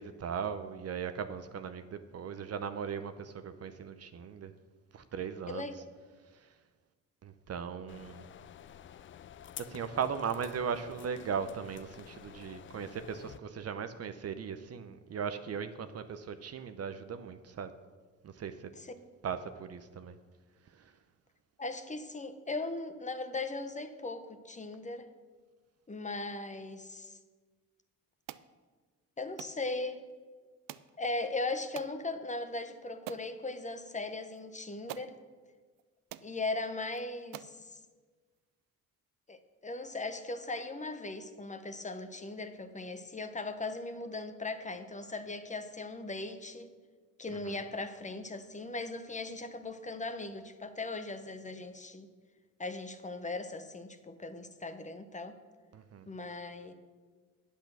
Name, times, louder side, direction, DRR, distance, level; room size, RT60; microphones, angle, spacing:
voice 1, 0.0-4.5 4.9-5.7 6.3-6.5 7.2-8.3 9.6-17.7 18.2-18.7 19.2-20.2 20.7-20.9 47.3-47.6 55.7-56.1, right 7 dB, 50° right, 10 dB, 0.7 m, -38 dB
sound 1, 7.9-13.4, left 9 dB, 40° left, 0.4 m, -50 dB
voice 2, 21.6-25.1 25.9-27.2 29.2-30.1 31.0-35.2 36.2-37.8 39.3-46.7 47.2-52.1 52.6-55.4 56.1-56.7, left 2 dB, 20° left, 9 dB, 0.9 m, -38 dB
sound 2, 28.3-28.5 29.4-29.6 30.7-30.9 31.8-32.0 32.5-32.6 33.1-33.3 34.4-34.5 34.9-35.1 35.8-35.9 36.1-36.3 36.9-37.0 37.3-37.6, right 14 dB, 80° right, 0.5 m, -45 dB
8.6 x 8.2 x 6.1 m, 1.4 s
cardioid pair, 85°, 33 cm